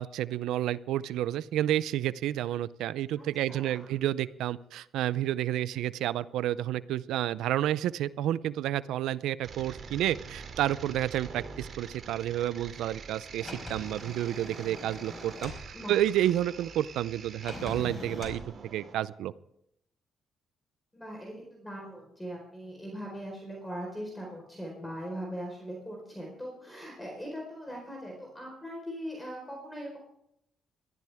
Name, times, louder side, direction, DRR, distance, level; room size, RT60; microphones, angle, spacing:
voice 1, 0.0-15.5 15.9-19.3, right 12 dB, 85° right, 18 dB, 0.5 m, -30 dB
voice 2, 3.2-3.9 5.5-5.9 15.7-16.0 20.9-30.0, equal, 10° left, -1 dB, 4.4 m, -40 dB
sound 1, 9.4-18.9, right 5 dB, 50° right, 2.7 m, -46 dB
Sliding door, 13.4-15.7 17.4-18.5, left 2 dB, 30° left, 4.6 m, -42 dB
22.0 x 13.5 x 3.5 m, 0.77 s
cardioid pair, 90°, 0 cm